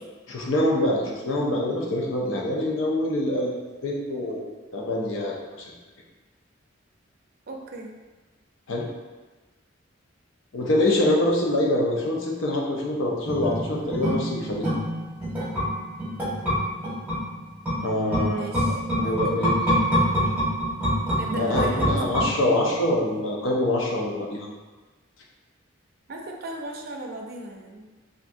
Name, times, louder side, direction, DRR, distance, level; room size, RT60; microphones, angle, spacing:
voice 1, 0.3-4.4 4.7-5.7 8.7-8.9 10.5-14.7 17.8-19.7 20.2-20.3 21.3-24.5, left 1 dB, 75° left, -1 dB, 0.6 m, -25 dB
voice 2, 7.5-7.9 18.0-19.2 21.2-21.9 26.1-27.9, right 1 dB, 50° right, 0 dB, 0.4 m, -36 dB
sound 1, 13.2-22.8 23.1-23.2, equal, 10° right, 0.8 m, -26 dB
3.4 x 2.5 x 2.6 m, 1.2 s
head